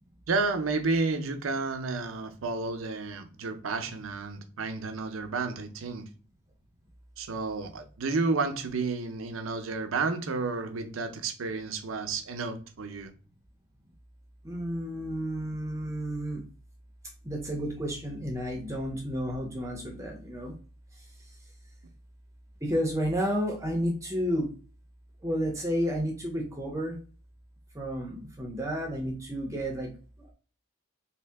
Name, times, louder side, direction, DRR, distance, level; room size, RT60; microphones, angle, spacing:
voice 1, 0.3-6.1 7.2-13.1, right 3 dB, 85° right, 0.6 m, -31 dB
voice 2, 14.4-16.4 17.2-20.6 20.9-21.1 22.6-24.5 25.2-27.0 27.7-29.9 30.2-30.3, equal, 15° right, 0.6 m, -31 dB
3.1 x 2.7 x 3.4 m
head